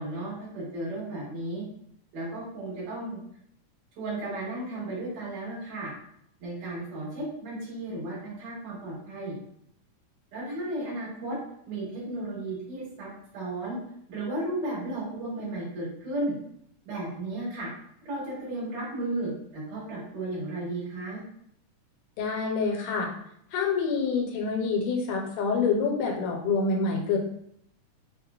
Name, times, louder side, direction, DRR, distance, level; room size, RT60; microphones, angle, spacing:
voice 1, 0.0-1.6 2.1-3.2 4.0-5.9 6.4-9.3 10.3-11.4 11.7-13.8 14.1-16.3 16.8-17.7 18.1-21.2, right 2 dB, 85° right, -7 dB, 3.0 m, -34 dB
voice 2, 22.2-23.1 23.5-27.2, left 4 dB, 80° left, 0 dB, 2.0 m, -27 dB
5.9 x 2.0 x 2.2 m, 0.70 s
omnidirectional pair, 3.7 m